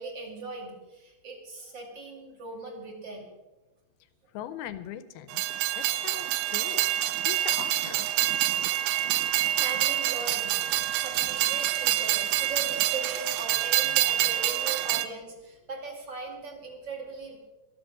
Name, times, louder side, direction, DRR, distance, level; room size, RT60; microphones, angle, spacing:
voice 1, 0.0-3.3 5.6-5.7 9.5-10.7 11.0-17.4, right 3 dB, 35° right, 2 dB, 2.4 m, -39 dB
voice 2, 4.3-6.9 7.2-8.1, left 11 dB, 80° left, 12 dB, 2.4 m, -41 dB
Train, 5.3-15.1, right 13 dB, 80° right, 2.1 m, -26 dB
13.5 x 13.0 x 6.1 m, 1.1 s
omnidirectional pair, 4.8 m